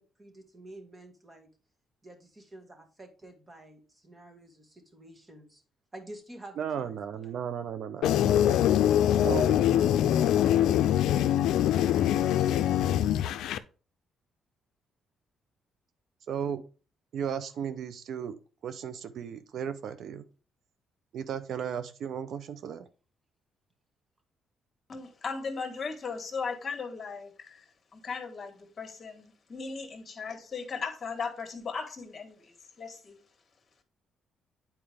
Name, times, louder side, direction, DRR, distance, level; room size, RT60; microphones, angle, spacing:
voice 1, 0.0-1.5 2.0-5.6 5.9-7.4 8.2-8.7 9.0-9.3 9.8-9.9 10.4-11.5, right 1 dB, 25° right, 1.7 m, -50 dB
voice 2, 6.6-8.6 9.2-10.0 16.3-16.6 17.1-18.4 18.6-20.2 21.1-22.9, right 8 dB, 70° right, 0.6 m, -35 dB
sound 1, 8.0-13.6, left 11 dB, 85° left, 0.4 m, -23 dB
voice 3, 24.9-27.6 27.9-33.2, left 5 dB, 40° left, 1.4 m, -37 dB
8.8 x 4.5 x 3.4 m
cardioid pair, 90°, 0 cm